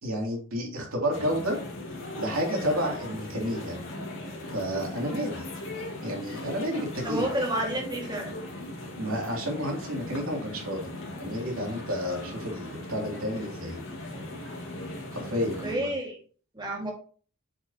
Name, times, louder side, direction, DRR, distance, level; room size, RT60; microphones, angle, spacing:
voice 1, 0.0-1.6 2.2-3.8 4.5-5.4 6.0-7.3 9.0-10.9 11.2-13.8 15.1-15.9, equal, 90° right, -1 dB, 2.9 m, -30 dB
sound 1, 1.1-15.8, left 1 dB, 65° left, 2.4 m, -39 dB
voice 2, 7.0-8.3 15.6-16.2 16.5-16.9, right 1 dB, 20° right, 0 dB, 2.0 m, -30 dB
7.4 x 6.5 x 2.9 m, 0.42 s
head